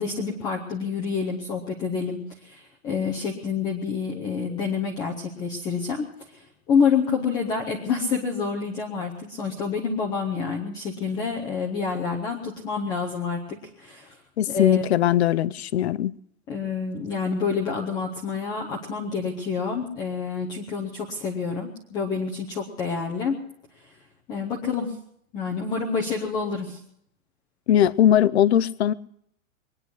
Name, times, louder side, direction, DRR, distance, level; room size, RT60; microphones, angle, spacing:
voice 1, 0.0-14.1 14.5-14.9 16.5-23.4 24.3-24.9 25.3-26.8, left 5 dB, 10° left, 0.7 m, -28 dB
voice 2, 14.4-16.1 27.7-28.9, left 11 dB, 50° left, 0.6 m, -20 dB
22.5 x 10.0 x 6.2 m
supercardioid pair, 175°, 43 cm